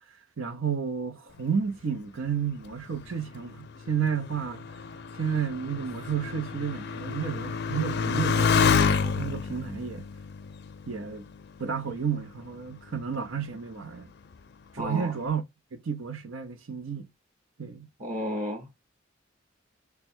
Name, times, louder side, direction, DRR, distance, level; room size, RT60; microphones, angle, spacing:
voice 1, 0.4-4.6 5.2-10.1 10.9-11.2 11.6-14.1 14.7-15.4 15.7-17.1 17.6-17.9, right 7 dB, 90° right, 0.7 m, -31 dB
Motorcycle, 2.7-11.7 12.4-13.0, left 6 dB, 60° left, 0.5 m, -29 dB
voice 2, 14.8-15.1 18.0-18.9, equal, 40° right, 1.0 m, -33 dB
3.4 x 2.2 x 4.4 m
head